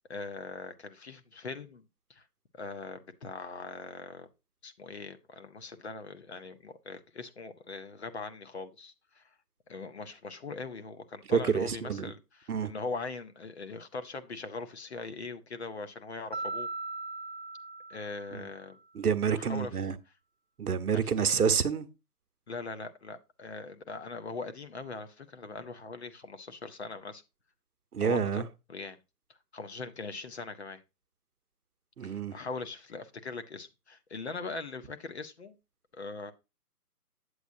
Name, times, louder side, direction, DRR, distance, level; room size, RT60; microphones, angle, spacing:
voice 1, 0.1-1.8 2.1-2.2 2.5-4.3 4.6-9.2 9.7-16.7 17.9-18.8 19.3-19.8 20.9-21.4 22.5-27.2 28.0-28.4 28.7-29.0 29.5-30.8 32.0-35.6 35.9-36.3, left 3 dB, 40° left, 0.9 m, -41 dB
voice 2, 11.3-12.1 12.5-12.7 18.3-18.4 18.9-20.0 20.6-21.9 27.9-28.5 32.0-32.3, right 6 dB, 65° right, 1.0 m, -28 dB
Mallet percussion, 16.3-18.7, right 3 dB, 45° right, 0.4 m, -39 dB
8.4 x 8.0 x 2.6 m
hypercardioid pair, 165°, 48 cm